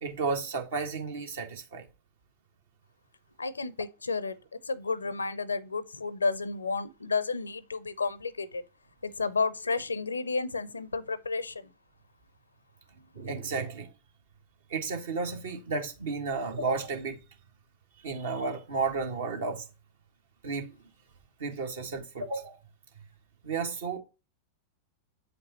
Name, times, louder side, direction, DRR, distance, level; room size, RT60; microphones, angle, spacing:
voice 1, 0.0-1.9 13.1-13.9 14.7-17.2 18.0-19.7 20.4-20.7 21.4-22.6 23.4-24.0, right 4 dB, 60° right, 1.4 m, -32 dB
voice 2, 3.4-4.4 4.7-8.6 9.0-11.7, left 4 dB, 75° left, 0.5 m, -31 dB
8.2 x 5.2 x 2.8 m
figure-of-eight pair, 90°, 0 cm